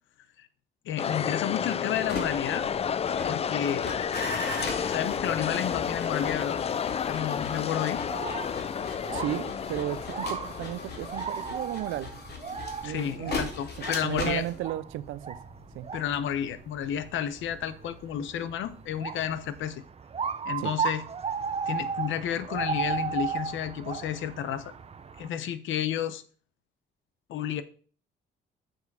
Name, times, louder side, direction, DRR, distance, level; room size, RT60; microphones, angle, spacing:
voice 1, 0.8-2.6 3.2-3.9 4.8-6.6 7.1-8.0 12.8-14.4 15.9-19.8 20.4-21.0 21.7-24.7 25.2-26.2 27.3-27.6, left 10 dB, 80° left, 0.8 m, -31 dB
sound 1, 1.0-11.6, left 7 dB, 30° left, 0.3 m, -31 dB
sound 2, 1.9-18.9 19.2-19.6, left 3 dB, 55° left, 2.3 m, -39 dB
sound 3, 7.9-25.3, right 6 dB, 30° right, 0.7 m, -36 dB
voice 2, 9.1-12.1 12.8-13.4 14.0-15.4 15.7-15.9 20.6-20.8, right 14 dB, 90° right, 0.5 m, -34 dB
7.1 x 6.3 x 4.7 m
cardioid pair, 90°, 20 cm